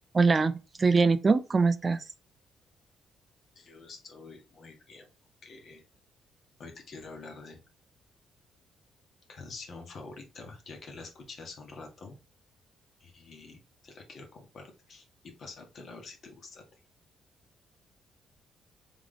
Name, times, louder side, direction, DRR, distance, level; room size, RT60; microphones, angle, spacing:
voice 1, 0.1-0.5 0.8-2.0, right 4 dB, 30° right, 0.4 m, -22 dB
voice 2, 3.5-5.1 5.4-5.8 6.6-7.6 9.3-12.2 13.0-16.6, left 3 dB, 55° left, 1.3 m, -47 dB
3.5 x 3.3 x 3.7 m
cardioid pair, 90°, 0 cm